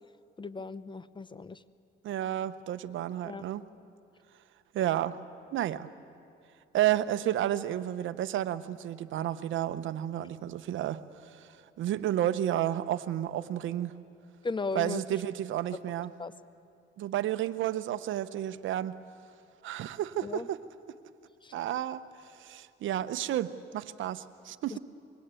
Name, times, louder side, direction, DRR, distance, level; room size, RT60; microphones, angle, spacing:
voice 1, 0.4-1.6 3.2-3.4 14.4-15.0 16.2-16.3 20.2-20.5 21.4-21.5 24.7-24.8, left 4 dB, 25° left, 16 dB, 0.8 m, -36 dB
voice 2, 2.0-3.6 4.7-5.1 5.5-5.9 6.7-11.5 11.8-13.9 14.7-16.1 17.0-19.0 19.6-20.6 21.5-22.0 22.4-24.8, right 12 dB, 80° right, 13 dB, 0.9 m, -31 dB
26.0 x 22.5 x 9.0 m, 2.6 s
cardioid pair, 90°, 20 cm